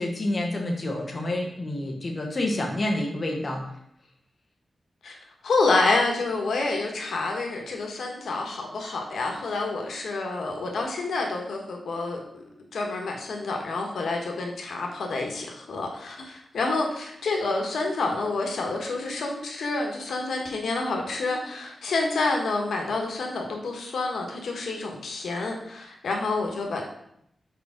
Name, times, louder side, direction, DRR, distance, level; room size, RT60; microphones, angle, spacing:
voice 1, 0.0-3.6, left 1 dB, 30° left, 0 dB, 1.1 m, -28 dB
voice 2, 5.4-12.4 12.7-26.8, left 3 dB, 85° left, 1 dB, 1.3 m, -28 dB
5.1 x 4.6 x 5.8 m, 0.74 s
wide cardioid pair, 160°, 0 cm